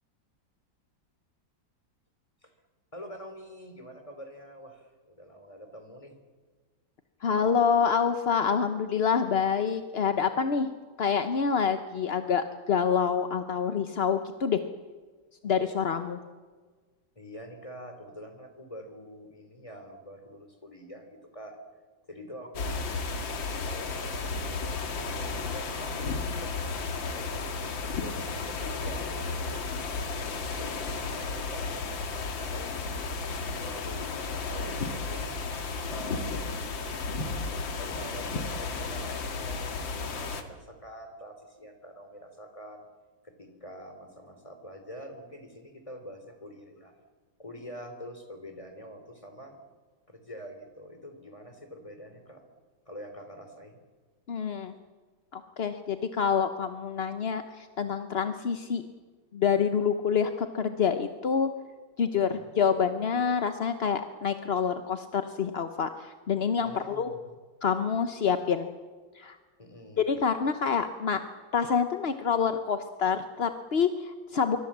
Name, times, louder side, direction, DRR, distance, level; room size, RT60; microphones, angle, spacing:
voice 1, 2.9-6.2 17.1-21.6 22.1-22.9 23.6-26.5 27.0-33.2 33.6-35.3 35.9-36.5 37.7-42.8 43.2-46.9 47.4-49.6 50.1-52.4 52.8-53.8 62.1-62.5 66.6-67.3 69.6-70.0, equal, 15° left, 7 dB, 3.3 m, -46 dB
voice 2, 7.2-10.7 11.0-14.6 15.4-16.2 54.3-54.7 55.3-58.8 59.3-61.5 62.0-67.1 67.6-68.7 69.1-69.4 70.1-71.2 71.5-74.6, left 6 dB, 45° left, 8 dB, 0.9 m, -27 dB
sound 1, 22.5-40.4, left 4 dB, 80° left, 2.6 m, -33 dB
26.0 x 23.5 x 7.4 m, 1.5 s
omnidirectional pair, 2.1 m